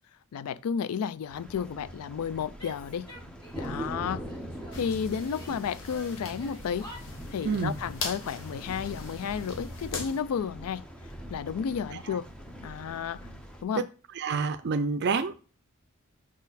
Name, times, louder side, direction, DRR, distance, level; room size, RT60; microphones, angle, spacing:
voice 1, 0.3-3.1 3.6-4.2 4.7-6.9 7.3-10.9 11.3-12.3 12.6-13.2 13.6-13.8, left 7 dB, 85° left, 0.4 m, -32 dB
sound 1, 1.3-13.6, right 1 dB, 5° left, 0.8 m, -43 dB
Female speech woman speaking / Yell, 2.6-3.8 4.1-5.5 5.9-7.7, equal, 20° left, 2.0 m, -49 dB
sound 2, 4.7-10.2, left 3 dB, 65° left, 1.4 m, -40 dB
voice 2, 14.2-15.3, right 5 dB, 55° right, 0.5 m, -28 dB
6.2 x 4.2 x 4.0 m
head